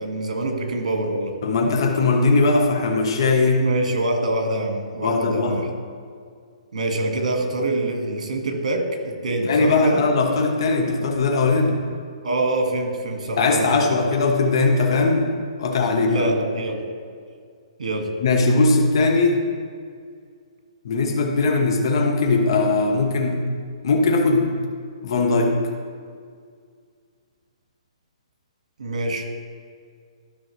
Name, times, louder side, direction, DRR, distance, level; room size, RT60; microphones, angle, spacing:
voice 1, 0.0-1.4 3.6-5.7 6.7-10.0 12.2-14.0 16.1-16.8 17.8-18.1 28.8-29.2, right 2 dB, 85° right, 2 dB, 1.8 m, -25 dB
voice 2, 1.4-3.6 5.0-5.5 9.3-11.8 13.4-15.3 15.6-16.3 18.2-19.4 20.8-23.4 23.8-24.5 25.0-25.5, left 3 dB, 45° left, 2 dB, 1.1 m, -19 dB
12.5 x 5.7 x 3.2 m, 2.1 s
hypercardioid pair, 175°, 4 cm